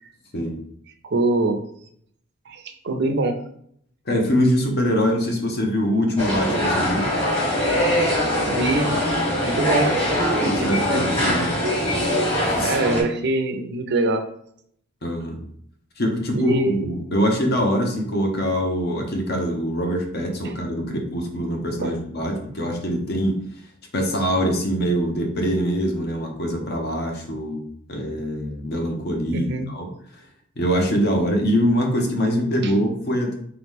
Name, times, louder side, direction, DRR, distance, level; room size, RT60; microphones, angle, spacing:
voice 1, 1.0-1.7 2.5-3.4 6.9-7.2 8.5-8.9 9.4-10.0 10.4-11.2 12.6-14.2 16.3-17.0 20.4-20.5 21.8-22.0 29.3-29.7 32.6-32.7, right 2 dB, 55° right, 6 dB, 0.5 m, -24 dB
voice 2, 4.1-7.1 10.4-11.5 12.5-12.8 15.0-15.4 16.0-23.4 23.9-27.6 27.9-29.9 30.6-33.4, equal, 50° left, 3 dB, 0.8 m, -23 dB
sound 1, 6.2-13.0, left 1 dB, 30° left, 1.5 m, -22 dB
3.5 x 2.9 x 3.5 m, 0.65 s
head